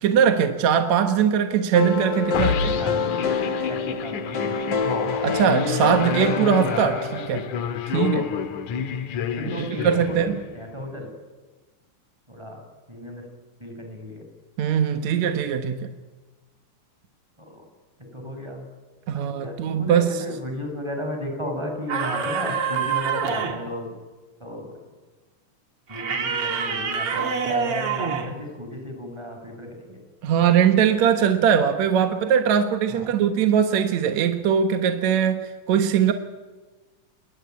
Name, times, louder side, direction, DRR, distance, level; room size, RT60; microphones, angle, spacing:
voice 1, 0.0-2.8 5.2-7.5 7.9-8.3 9.5-10.4 14.6-15.9 19.1-20.4 30.2-36.1, right 8 dB, 65° right, 2.4 m, -21 dB
sound 1, 1.7-7.6, left 4 dB, 45° left, 1.8 m, -27 dB
sound 2, 2.3-10.6, left 7 dB, 70° left, 2.7 m, -29 dB
voice 2, 3.7-4.9 7.9-8.1 9.4-10.2 10.5-11.1 12.3-12.6 12.9-13.2 13.6-14.2 17.5-17.6 18.1-18.6 19.3-23.9 24.4-24.7 25.9-30.0 32.9-33.0, left 1 dB, 10° right, 6.2 m, -34 dB
sound 3, 21.9-23.7 25.9-28.4, right 6 dB, 50° right, 2.7 m, -26 dB
29.0 x 22.5 x 9.3 m
omnidirectional pair, 3.6 m